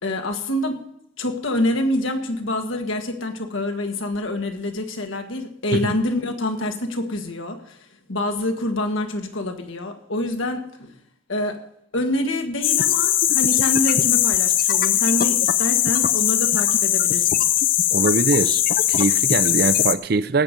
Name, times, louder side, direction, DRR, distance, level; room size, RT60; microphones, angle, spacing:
voice 1, 0.0-0.8 1.2-10.9 11.3-11.6 11.9-17.4, left 1 dB, 90° left, 5 dB, 1.7 m, -26 dB
sound 1, 12.6-19.9, left 11 dB, 45° left, 0.5 m, -20 dB
voice 2, 17.9-20.4, right 3 dB, 50° right, 15 dB, 0.5 m, -22 dB
18.0 x 7.6 x 5.3 m, 0.73 s
head